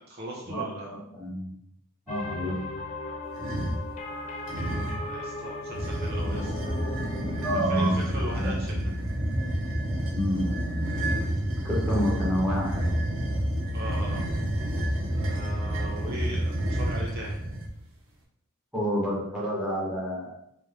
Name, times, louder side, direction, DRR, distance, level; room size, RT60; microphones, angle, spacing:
voice 1, 0.1-1.0 4.1-6.5 7.7-8.7 13.7-14.3 15.1-17.3, right 1 dB, 50° right, -3 dB, 0.9 m, -38 dB
voice 2, 1.1-1.5 2.1-2.6 7.4-7.9 8.3-8.8 10.1-10.5 11.6-12.9 18.7-20.3, equal, 5° right, -6 dB, 1.4 m, -28 dB
sound 1, 2.1-7.6, left 2 dB, 35° left, 0.5 m, -37 dB
sound 2, 3.3-3.9 4.5-5.1 5.7-17.7, right 1 dB, 70° right, 1.0 m, -29 dB
3.3 x 3.2 x 4.3 m, 0.75 s
head